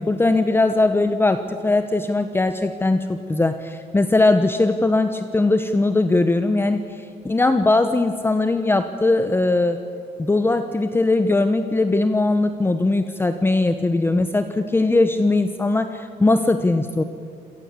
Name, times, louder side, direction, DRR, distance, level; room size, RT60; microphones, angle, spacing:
voice 1, 0.0-9.8 10.2-17.0, left 2 dB, 15° left, 9 dB, 1.0 m, -20 dB
27.0 x 18.0 x 8.4 m, 2.5 s
cardioid pair, 110°, 17 cm